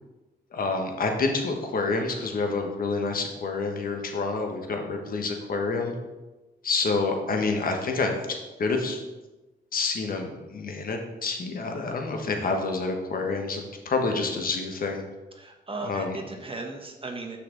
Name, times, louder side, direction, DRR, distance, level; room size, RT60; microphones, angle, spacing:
voice 1, 0.5-5.9 6.6-8.1 8.6-9.0 9.7-15.0 15.8-16.2, left 3 dB, 55° left, 3 dB, 1.2 m, -28 dB
voice 2, 15.3-17.4, right 2 dB, 30° right, 3 dB, 1.1 m, -36 dB
6.2 x 5.7 x 3.9 m, 1.1 s
cardioid pair, 70°, 18 cm